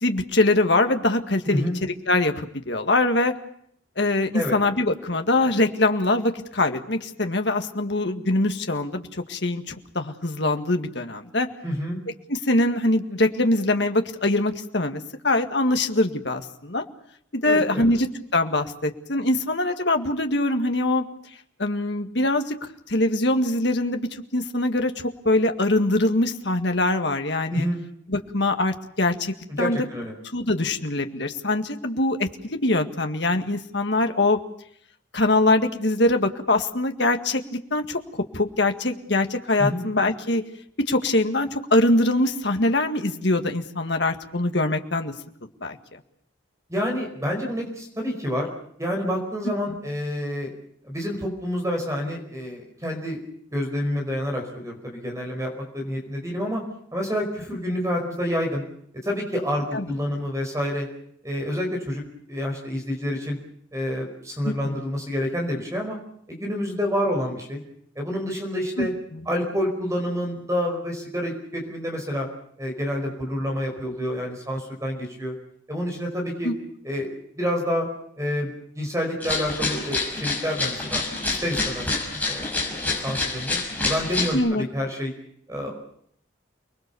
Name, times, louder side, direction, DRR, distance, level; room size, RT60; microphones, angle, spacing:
voice 1, 0.0-3.3 4.0-11.5 12.3-16.8 17.4-21.0 21.6-22.5 22.9-27.7 28.1-29.8 30.3-34.4 35.1-37.4 37.7-38.0 38.3-40.4 40.9-45.1 45.6-45.8 49.7-49.8 59.7-59.9 64.4-64.8 68.8-68.9 76.4-76.5 84.3-84.6, left 2 dB, 60° left, 6 dB, 1.9 m, -23 dB
voice 2, 1.5-1.8 4.3-4.6 11.6-12.0 17.4-17.9 27.5-27.8 29.5-30.1 39.6-39.8 46.7-48.5 48.8-50.5 50.8-53.2 53.5-56.6 56.9-58.6 59.0-60.9 61.2-62.0 62.3-63.4 63.7-66.0 66.3-67.6 67.9-68.9 69.2-72.3 72.6-75.3 75.7-76.5 76.8-77.9 78.2-78.5 78.7-81.9 82.2-82.7 83.0-85.1 85.5-85.8, equal, 15° right, 2 dB, 5.0 m, -28 dB
sound 1, 79.2-84.3, left 3 dB, 10° left, 6.0 m, -27 dB
29.0 x 20.5 x 7.0 m, 0.69 s
head